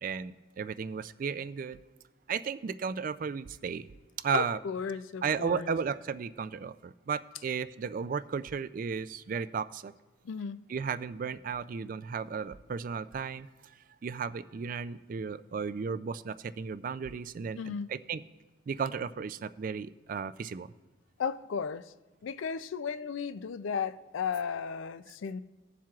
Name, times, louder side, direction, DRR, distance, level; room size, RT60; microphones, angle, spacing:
voice 1, 0.0-1.8 2.3-3.9 4.2-4.6 5.2-9.9 10.7-13.5 14.0-18.2 18.7-20.7, right 6 dB, 40° right, 15 dB, 0.3 m, -34 dB
voice 2, 4.3-5.7 10.2-10.6 17.6-17.9 21.2-21.9 22.2-25.4, left 6 dB, 75° left, 14 dB, 0.4 m, -35 dB
19.5 x 7.4 x 2.4 m, 1.2 s
head